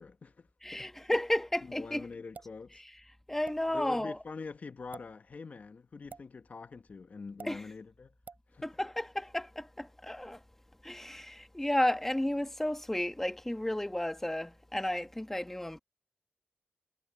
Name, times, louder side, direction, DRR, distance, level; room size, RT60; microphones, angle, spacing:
voice 1, 0.0-0.9 1.6-2.8 3.7-8.1 8.5-8.7, left 4 dB, 55° left, 1.0 m, -45 dB
voice 2, 0.6-2.1 3.3-4.2 7.4-7.6 8.6-10.4 10.8-15.8, left 1 dB, 10° left, 1.4 m, -32 dB
sound 1, 2.3-2.6 3.4-3.6 4.8-5.1 6.1-6.3 7.4-7.5 8.3-8.4, right 5 dB, 70° right, 4.7 m, -47 dB
wide cardioid pair, 110°, 3 cm